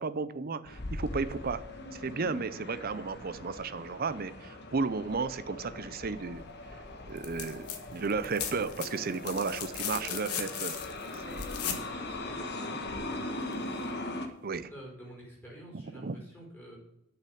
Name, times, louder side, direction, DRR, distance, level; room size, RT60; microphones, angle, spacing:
voice 1, 0.0-1.6 1.9-6.4 7.1-10.8 11.3-11.5 14.4-14.7 15.9-16.2, right 4 dB, 40° right, 14 dB, 0.5 m, -34 dB
sound 1, 0.6-14.3, left 2 dB, 50° left, 1.3 m, -40 dB
sound 2, 7.2-7.8 8.1-11.9 13.5-13.6, left 8 dB, 90° left, 1.3 m, -37 dB
voice 2, 12.1-13.5 14.7-16.8, right 1 dB, 10° left, -3 dB, 4.7 m, -49 dB
8.4 x 6.7 x 8.4 m, 0.85 s
head